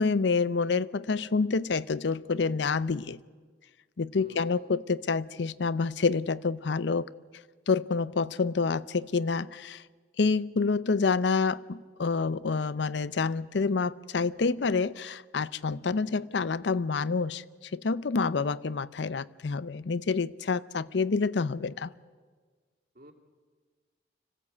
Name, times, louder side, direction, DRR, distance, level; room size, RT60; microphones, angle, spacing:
voice 1, 0.0-3.2 4.0-7.1 7.7-9.8 10.2-21.9, left 4 dB, 75° left, 0.6 m, -28 dB
voice 2, 4.1-4.7 22.9-23.1, right 1 dB, 55° right, 2.6 m, -51 dB
25.0 x 16.0 x 8.4 m
head